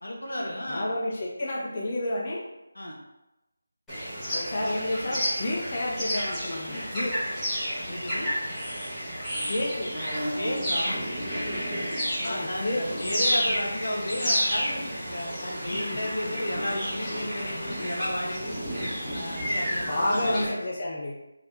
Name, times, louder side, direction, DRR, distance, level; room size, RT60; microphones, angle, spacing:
voice 1, 0.0-0.9 2.7-2.9 7.9-8.3 10.3-11.0 12.2-18.5 19.1-20.4, left 1 dB, 75° left, -1 dB, 1.0 m, -33 dB
voice 2, 0.7-2.4 4.3-7.2 9.5-9.9 12.2-13.0 15.7-16.0 19.8-21.1, left 1 dB, 35° left, -4 dB, 0.5 m, -30 dB
sound 1, 3.9-20.5, equal, 5° left, 1.2 m, -31 dB
3.5 x 2.7 x 3.3 m, 0.97 s
figure-of-eight pair, 165°, 0 cm